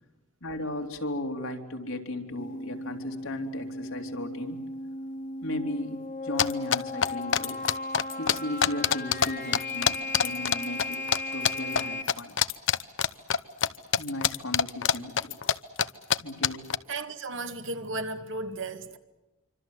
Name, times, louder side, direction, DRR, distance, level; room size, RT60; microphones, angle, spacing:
voice 1, 0.4-4.6 5.4-7.6 8.2-12.4 14.0-15.4 16.2-16.7, left 1 dB, 80° left, 3.3 m, -36 dB
sound 1, 2.4-12.0, left 2 dB, 35° left, 1.7 m, -36 dB
sound 2, 6.4-9.3 9.5-11.2 11.4-11.8 12.1-13.7 13.9-15.5 15.8-16.2 16.4-16.8, left 8 dB, 60° left, 0.8 m, -24 dB
voice 2, 16.9-19.0, right 2 dB, 60° right, 2.0 m, -34 dB
26.5 x 25.5 x 7.9 m
head